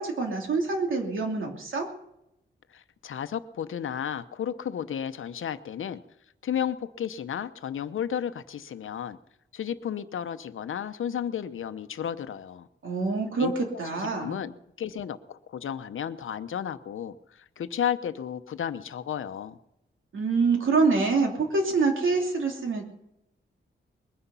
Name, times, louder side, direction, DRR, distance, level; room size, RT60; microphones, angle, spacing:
voice 1, 0.0-1.9 12.8-14.4 20.1-22.8, right 4 dB, 80° right, 1 dB, 2.9 m, -26 dB
voice 2, 2.7-6.0 6.4-9.2 9.5-12.7 13.4-14.5 14.8-19.6, left 9 dB, 85° left, 11 dB, 0.8 m, -33 dB
21.0 x 10.0 x 5.6 m, 0.84 s
wide cardioid pair, 175°, 20 cm